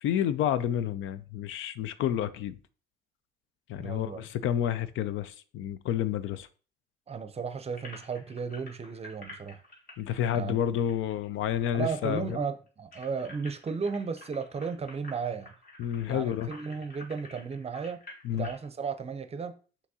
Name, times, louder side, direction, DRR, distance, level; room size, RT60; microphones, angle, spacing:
voice 1, 0.0-2.6 3.7-6.5 10.0-12.4 15.8-16.5 18.2-18.5, left 10 dB, 85° left, 0.4 m, -30 dB
voice 2, 3.7-4.2 7.1-9.6 10.3-10.6 11.7-15.5 16.1-18.0 18.3-19.5, right 5 dB, 30° right, 0.5 m, -34 dB
sound 1, 7.7-11.6 11.9-12.0 12.3-18.6, left 2 dB, 45° left, 1.6 m, -49 dB
5.8 x 3.0 x 2.8 m
cardioid pair, 90°, 20 cm